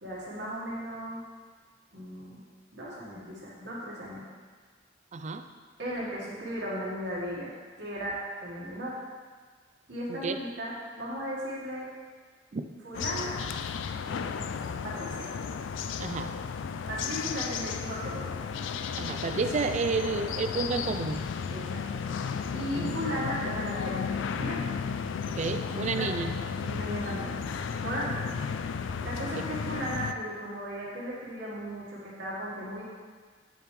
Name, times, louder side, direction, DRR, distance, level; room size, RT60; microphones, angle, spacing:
voice 1, 0.0-1.2 1.9-2.4 2.7-4.3 5.8-7.5 7.8-9.0 9.9-11.9 12.8-13.4 14.0-14.5 14.8-15.3 16.9-18.3 21.5-22.1 22.5-24.7 26.0-26.1 26.6-27.4 27.8-28.4 29.0-32.8, equal, 65° right, -6 dB, 1.5 m, -36 dB
voice 2, 5.1-5.5 10.1-10.4 12.5-12.6 16.0-16.4 18.9-21.2 22.8-23.0 25.3-26.3, right 4 dB, 40° right, 8 dB, 0.4 m, -31 dB
sound 1, 12.9-30.1, left 6 dB, 90° left, 0.3 m, -34 dB
8.8 x 6.6 x 3.2 m, 1.5 s
head